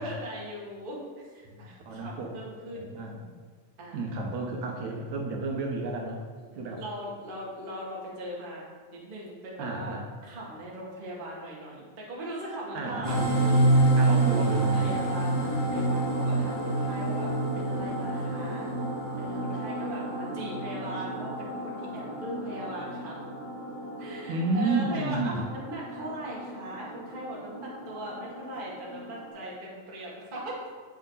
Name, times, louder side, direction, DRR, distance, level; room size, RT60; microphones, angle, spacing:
voice 1, 0.0-2.9 3.8-4.0 6.5-9.9 10.2-14.0 14.5-18.7 19.1-23.2 24.0-30.6, right 1 dB, 25° right, -5 dB, 1.1 m, -39 dB
voice 2, 1.4-2.3 2.7-3.3 3.9-6.2 6.5-6.8 9.6-10.1 12.7-13.2 14.0-15.0 24.3-25.4, right 3 dB, 75° right, 1 dB, 2.1 m, -32 dB
sound 1, 13.0-29.3, right 2 dB, 40° left, 2.6 m, -29 dB
8.3 x 5.5 x 3.9 m, 1.5 s
omnidirectional pair, 3.4 m